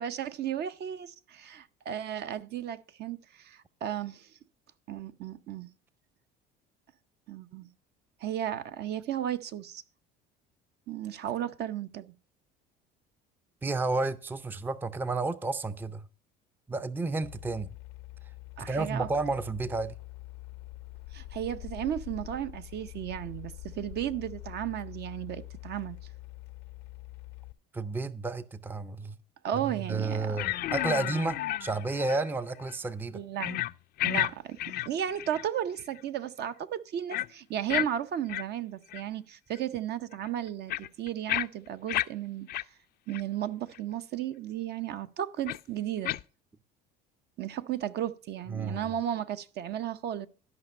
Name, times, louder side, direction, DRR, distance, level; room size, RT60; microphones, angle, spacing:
voice 1, 0.0-4.3 4.9-5.7 7.3-7.7 8.2-9.8 10.9-12.1 18.6-19.1 21.1-26.0 29.4-30.4 33.1-33.6 34.0-34.6 34.8-42.5 43.1-46.1 47.4-50.3, right 10 dB, 50° right, 0.7 m, -34 dB
voice 2, 13.6-16.0 16.7-17.7 18.7-19.9 27.7-29.2 29.6-33.2 48.5-48.9, right 3 dB, 10° right, 0.5 m, -31 dB
sound 1, 17.2-27.5, left 17 dB, 85° left, 0.6 m, -45 dB
sound 2, 30.4-32.3 32.6-32.7 33.4-33.7 34.0-34.3 34.6-35.5 35.8-36.0 37.1-37.3 37.7-37.9 38.3-38.4 38.9-39.0 39.5-39.6 40.1-42.1 42.5-42.6 43.1-43.2 43.7-43.8 45.5-45.6 46.0-46.2, left 14 dB, 50° left, 0.4 m, -31 dB
12.5 x 5.3 x 5.3 m
supercardioid pair, 90°, 21 cm